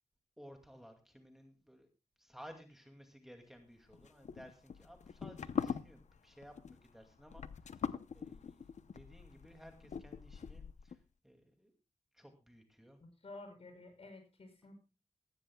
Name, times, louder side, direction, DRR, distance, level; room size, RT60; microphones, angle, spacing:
voice 1, 0.4-1.9 2.2-11.7 12.1-13.0, equal, 5° right, 3 dB, 2.3 m, -57 dB
sound 1, 3.9-11.0, left 6 dB, 80° left, 0.7 m, -42 dB
voice 2, 13.2-14.8, left 2 dB, 55° left, 4 dB, 6.3 m, -52 dB
17.5 x 16.0 x 2.3 m, 0.30 s
wide cardioid pair, 105°, 12 cm